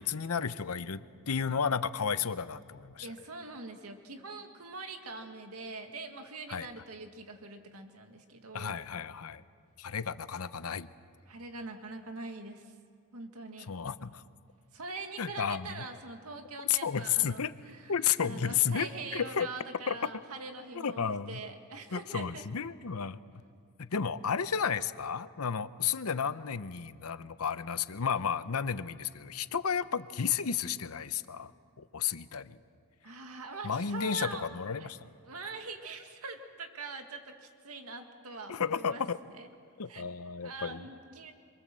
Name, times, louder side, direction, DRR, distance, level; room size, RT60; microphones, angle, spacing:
voice 1, 0.0-3.1 6.5-6.7 8.5-9.4 9.8-10.9 13.7-14.2 15.2-15.8 16.7-17.5 17.9-19.5 19.9-20.0 20.7-21.4 21.9-23.2 23.8-31.5 31.8-32.6 33.6-35.0 38.5-39.2 39.8-40.8, left 7 dB, 75° left, 13 dB, 0.8 m, -32 dB
voice 2, 3.0-8.8 11.3-12.7 13.1-13.7 14.7-17.9 18.2-22.4 33.0-34.5 34.8-34.9 35.3-39.0 39.4-39.5 39.9-40.0 40.4-41.3, right 3 dB, 80° right, 5 dB, 2.0 m, -43 dB
27.5 x 23.5 x 7.6 m, 2.2 s
head